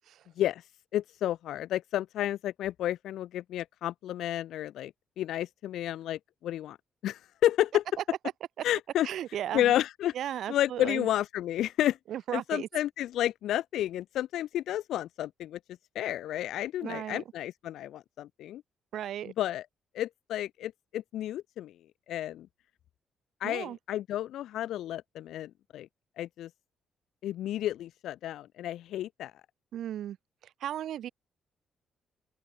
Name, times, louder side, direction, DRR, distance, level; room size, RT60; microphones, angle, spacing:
voice 1, 0.9-6.8 7.0-7.8 8.6-9.1 9.5-10.1 10.5-12.0 12.3-15.6 15.9-18.6 19.4-19.6 19.9-21.7 22.1-22.5 23.4-25.9 26.2-26.5 27.2-29.3, left 12 dB, 80° left, 1.6 m, -31 dB
voice 2, 9.0-9.7 10.1-11.1 12.1-12.7 16.8-17.2 18.9-19.3 23.4-23.8 29.7-30.2 30.6-31.1, right 11 dB, 75° right, 1.1 m, -35 dB
open air
cardioid pair, 90°, 0 cm